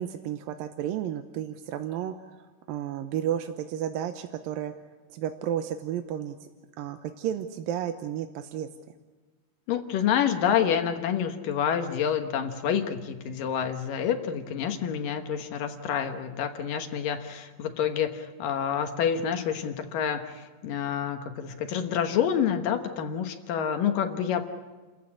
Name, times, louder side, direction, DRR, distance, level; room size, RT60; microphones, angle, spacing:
voice 1, 0.0-4.7 5.1-6.5 6.8-8.7, right 10 dB, 85° right, 7 dB, 2.6 m, -32 dB
voice 2, 9.7-24.4, left 8 dB, 75° left, 7 dB, 2.9 m, -28 dB
29.0 x 15.0 x 8.6 m, 1.3 s
omnidirectional pair, 4.0 m